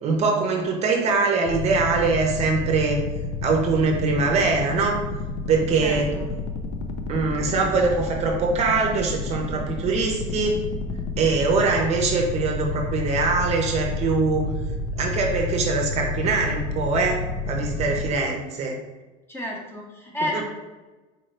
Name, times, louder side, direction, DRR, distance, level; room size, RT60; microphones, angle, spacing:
voice 1, 0.0-3.0 3.4-5.0 5.5-6.1 7.1-10.6 11.2-14.5 15.0-18.8 20.3-20.4, right 4 dB, 35° right, 1 dB, 0.6 m, -23 dB
sound 1, 1.5-18.1, left 3 dB, 70° left, 0.5 m, -30 dB
voice 2, 5.7-6.3 19.3-20.4, left 1 dB, 10° left, -2 dB, 0.6 m, -31 dB
4.2 x 2.7 x 3.2 m, 1.2 s
cardioid pair, 155°, 19 cm